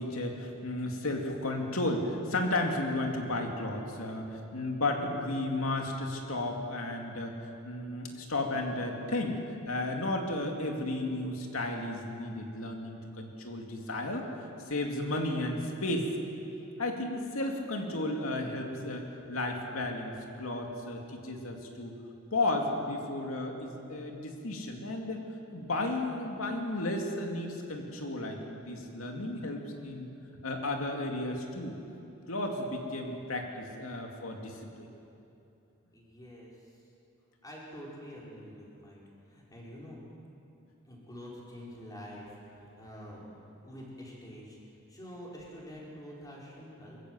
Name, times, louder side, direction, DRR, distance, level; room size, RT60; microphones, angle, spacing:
voice 1, 0.0-7.3 7.6-9.4 9.7-14.3 14.7-16.1 16.8-20.1 20.4-21.9 22.3-25.2 25.5-30.1 30.4-31.8 32.3-34.9, left 2 dB, 80° left, 2 dB, 2.7 m, -33 dB
voice 2, 35.9-36.8 37.4-40.0 40.8-43.4 43.6-44.6 44.9-47.0, equal, 20° left, -5 dB, 4.7 m, -47 dB
23.5 x 14.5 x 8.0 m, 2.8 s
head